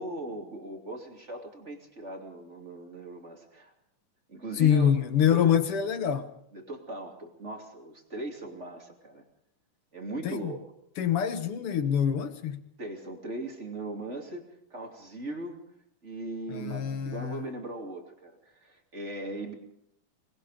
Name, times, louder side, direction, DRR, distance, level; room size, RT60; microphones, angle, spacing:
voice 1, 0.0-3.7 4.3-4.9 5.3-5.5 6.5-9.2 9.9-10.6 12.8-15.6 16.0-19.5, right 2 dB, 20° right, 2.8 m, -39 dB
voice 2, 4.6-6.3 10.2-10.5 11.0-12.6 16.5-17.4, left 9 dB, 60° left, 1.6 m, -25 dB
25.0 x 20.5 x 5.1 m
omnidirectional pair, 3.9 m